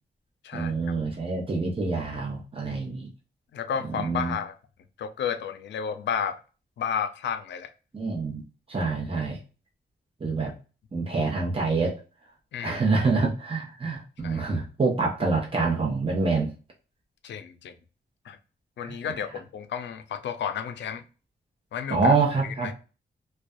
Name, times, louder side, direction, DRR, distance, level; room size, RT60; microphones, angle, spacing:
voice 1, 0.5-3.1 3.9-4.3 7.9-8.4 8.7-9.4 10.2-10.5 10.9-11.9 12.6-16.5 18.8-19.2 21.9-22.7, right 3 dB, 30° right, -2 dB, 0.9 m, -26 dB
voice 2, 3.5-4.5 5.0-6.4 6.8-7.7 12.5-12.8 14.2-14.4 17.2-17.7 18.3-18.4 18.8-21.0 21.7-22.1 22.4-22.7, left 7 dB, 75° left, 9 dB, 0.4 m, -32 dB
2.5 x 2.2 x 2.2 m, 0.35 s
cardioid pair, 60°, 19 cm